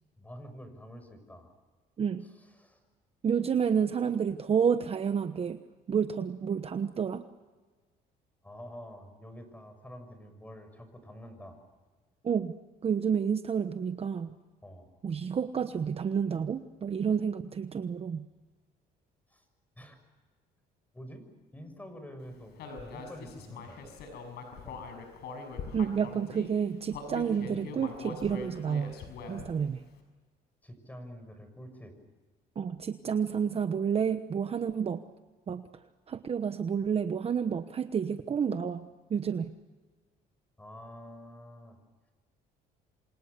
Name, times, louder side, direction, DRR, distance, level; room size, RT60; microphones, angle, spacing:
voice 1, 0.2-1.5 2.2-2.8 8.4-11.6 14.6-14.9 19.3-19.4 19.8-20.0 20.9-23.9 24.5-24.9 30.6-32.0 40.6-41.8, equal, 10° left, 7 dB, 6.5 m, -48 dB
voice 2, 3.2-5.6 5.9-7.3 12.2-12.5 12.8-14.4 15.0-18.3 25.7-28.9 29.3-29.8 32.6-35.0 35.5-35.6 36.1-39.5, right 7 dB, 35° right, 9 dB, 1.1 m, -30 dB
Human voice, 22.6-26.5 26.9-29.6, left 4 dB, 75° left, 6.4 m, -42 dB
28.5 x 26.0 x 6.8 m, 1.3 s
cardioid pair, 110°, 17 cm